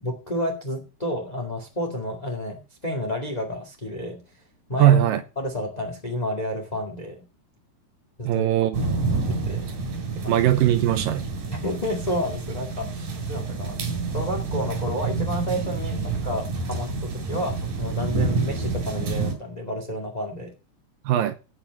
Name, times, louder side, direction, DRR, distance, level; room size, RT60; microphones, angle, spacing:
voice 1, 0.0-4.2 4.7-5.0 5.3-7.2 8.2-8.5 9.1-9.7 10.1-10.4 11.5-13.8 14.1-20.5, equal, 20° left, 0.9 m, -30 dB
voice 2, 4.8-5.2 8.2-8.8 10.3-11.3 21.1-21.4, right 12 dB, 80° right, 2.0 m, -20 dB
sound 1, 8.7-19.3, right 4 dB, 50° right, 4.3 m, -28 dB
17.0 x 5.9 x 5.2 m
omnidirectional pair, 4.8 m